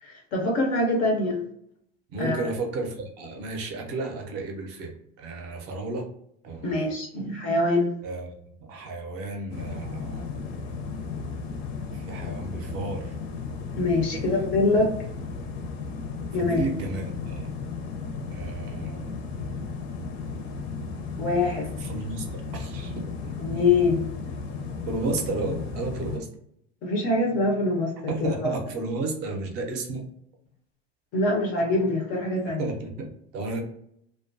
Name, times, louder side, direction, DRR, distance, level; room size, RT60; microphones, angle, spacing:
voice 1, 0.0-1.4 2.2-2.5 6.6-7.9 13.8-14.9 16.3-16.6 21.2-21.7 23.4-24.1 26.8-28.3 31.1-32.7, left 2 dB, 30° left, 0 dB, 0.3 m, -24 dB
voice 2, 2.1-4.9 5.2-6.1 6.4-6.9 8.0-10.4 11.9-13.1 14.1-14.5 16.4-17.5 18.3-19.1 21.8-23.0 24.9-26.3 28.1-30.1 32.5-33.6, right 3 dB, 35° right, 2 dB, 0.5 m, -33 dB
sound 1, 9.5-26.2, left 4 dB, 90° left, 0.6 m, -34 dB
2.6 x 2.2 x 2.4 m, 0.72 s
cardioid pair, 175°, 30 cm